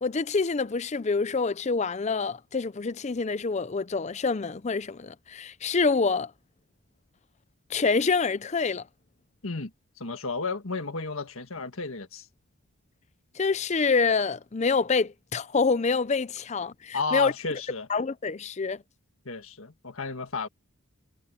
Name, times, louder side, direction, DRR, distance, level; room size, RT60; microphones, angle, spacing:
voice 1, 0.0-6.3 7.7-8.8 13.4-17.3 17.9-18.8, left 4 dB, 30° left, 0.5 m, -26 dB
voice 2, 10.0-12.2 16.9-17.9 19.2-20.5, left 4 dB, 70° left, 1.7 m, -32 dB
head